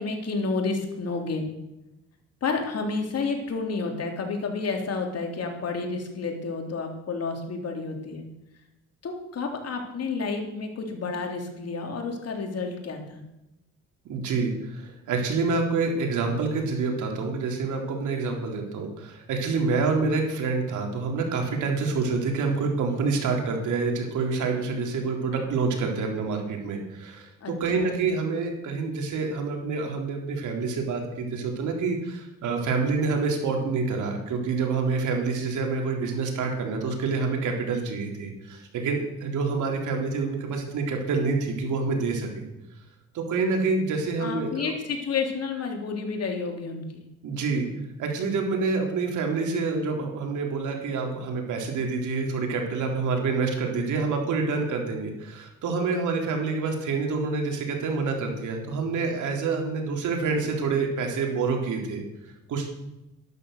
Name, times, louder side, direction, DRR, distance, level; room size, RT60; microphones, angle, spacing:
voice 1, 0.0-1.5 2.4-8.2 9.0-13.2 27.4-27.9 44.2-47.1, left 4 dB, 55° left, 3 dB, 3.6 m, -30 dB
voice 2, 14.1-42.5 43.1-44.7 47.2-47.7 48.0-62.0 62.5-62.7, right 4 dB, 80° right, 2 dB, 3.6 m, -27 dB
12.5 x 12.0 x 6.7 m, 0.93 s
cardioid pair, 90°, 30 cm